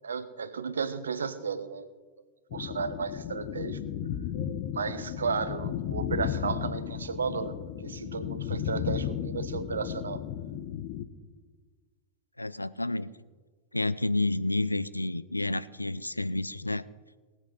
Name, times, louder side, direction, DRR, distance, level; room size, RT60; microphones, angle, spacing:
voice 1, 0.0-1.9 2.5-3.8 4.7-10.2, right 5 dB, 70° right, 13 dB, 0.9 m, -33 dB
sound 1, 2.5-11.1, left 9 dB, 45° left, 1.0 m, -34 dB
voice 2, 12.4-13.1 13.7-16.8, left 2 dB, 85° left, 17 dB, 0.4 m, -30 dB
19.5 x 8.1 x 5.6 m, 1.4 s
figure-of-eight pair, 90°, 0 cm